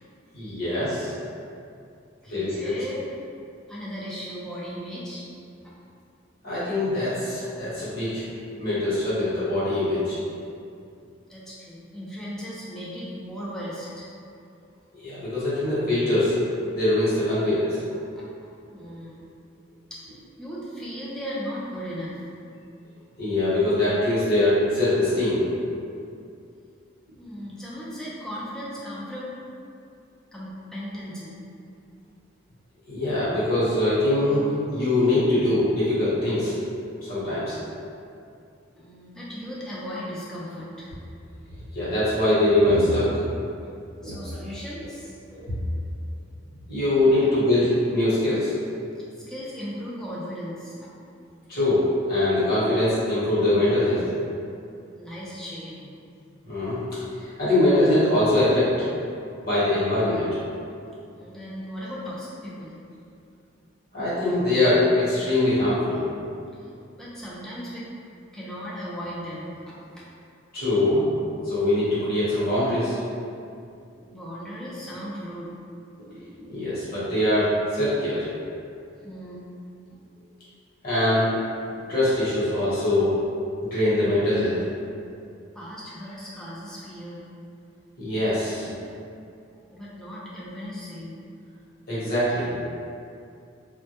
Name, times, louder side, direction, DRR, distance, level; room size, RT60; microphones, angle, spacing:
voice 1, 0.3-1.1 2.3-2.7 6.4-8.2 8.6-10.2 15.0-16.4 16.7-17.8 23.2-25.5 32.9-36.5 37.0-37.6 41.7-43.1 44.0-44.1 45.3-45.6 46.7-48.5 51.5-54.0 56.4-56.8 57.2-58.9 59.4-60.3 63.9-66.0 70.5-71.1 71.4-73.0 76.1-78.3 80.8-81.3 81.8-83.1 83.7-84.6 88.0-88.7 91.9-92.5, left 1 dB, 50° left, -11 dB, 1.0 m, -23 dB
voice 2, 2.2-3.0 3.7-5.3 11.3-14.1 18.1-18.2 18.7-19.3 19.9-22.2 27.2-29.4 30.3-31.4 38.8-40.9 44.0-45.1 49.3-50.9 55.0-55.9 61.2-62.8 66.6-66.7 67.0-67.9 68.3-70.1 74.0-75.5 79.0-79.5 85.5-87.2 89.7-91.2, equal, 5° left, -8 dB, 0.4 m, -37 dB
2.1 x 2.1 x 2.8 m, 2.5 s
head